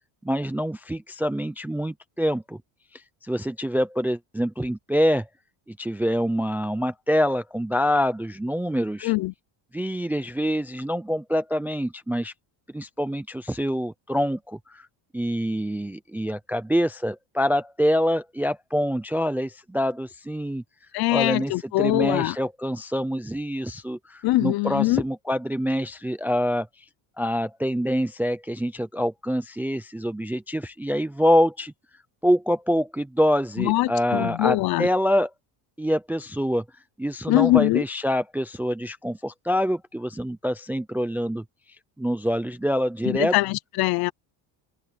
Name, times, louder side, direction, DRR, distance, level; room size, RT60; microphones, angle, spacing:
voice 1, 0.2-2.6 3.2-5.3 5.7-9.1 9.7-12.3 12.7-14.9 15.1-20.6 21.1-26.7 27.2-31.7 32.2-35.3 35.8-36.6 37.0-41.4 42.0-43.4, equal, 5° right, 0.4 m, -25 dB
voice 2, 9.0-9.3 20.9-22.4 24.2-25.0 33.6-34.9 37.3-37.8 43.0-44.1, left 18 dB, 50° left, 0.6 m, -22 dB
cardioid pair, 170°, 49 cm